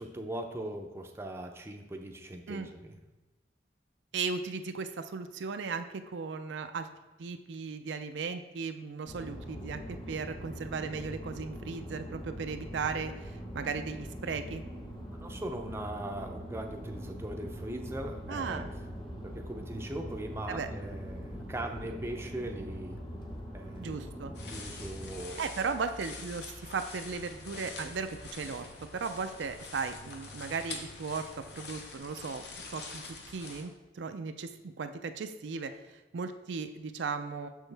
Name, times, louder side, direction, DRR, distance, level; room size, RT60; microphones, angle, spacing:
voice 1, 0.0-3.0 15.2-18.7 19.2-23.0 23.5-24.0 24.5-25.4, right 1 dB, 15° right, 3 dB, 0.5 m, -40 dB
voice 2, 4.1-6.9 7.2-14.6 18.3-18.7 20.5-20.7 23.8-24.3 25.4-32.4 32.7-37.7, right 5 dB, 75° right, 8 dB, 0.4 m, -36 dB
sound 1, 9.1-25.2, equal, 25° left, 1.1 m, -42 dB
sound 2, 24.3-33.6, left 3 dB, 60° left, 0.9 m, -45 dB
6.5 x 6.3 x 3.3 m, 1.1 s
head